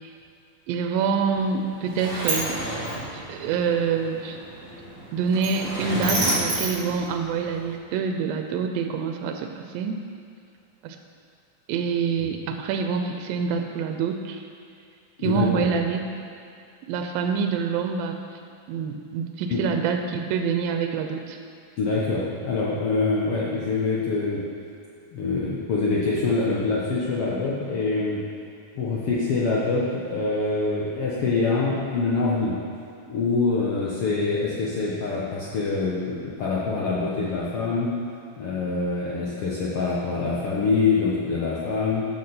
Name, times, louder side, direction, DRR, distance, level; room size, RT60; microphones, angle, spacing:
voice 1, 0.7-2.6 3.3-4.4 5.1-10.0 10.8-11.0 11.7-14.4 15.2-16.0 16.9-18.2 18.7-21.4, right 6 dB, 90° right, 5 dB, 2.4 m, -26 dB
Sliding door, 1.3-7.7, right 1 dB, 45° right, 3.4 m, -30 dB
voice 2, 15.2-15.7 19.5-19.6 21.8-24.4 25.1-28.2 28.7-32.6 33.1-37.9 38.4-42.0, left 3 dB, 70° left, -6 dB, 1.4 m, -25 dB
13.0 x 6.4 x 4.3 m, 2.4 s
omnidirectional pair, 4.0 m